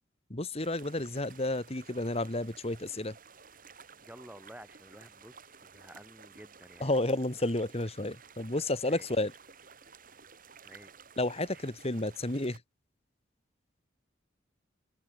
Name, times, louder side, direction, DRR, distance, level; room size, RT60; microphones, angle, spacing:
voice 1, 0.3-3.2 6.8-9.3 11.2-12.6, left 2 dB, 35° left, 2.2 m, -31 dB
sound 1, 0.6-12.6, right 5 dB, 45° right, 4.7 m, -54 dB
voice 2, 4.0-6.9 8.9-9.1 10.6-10.9 11.5-11.6, right 1 dB, 5° right, 5.0 m, -52 dB
open air
head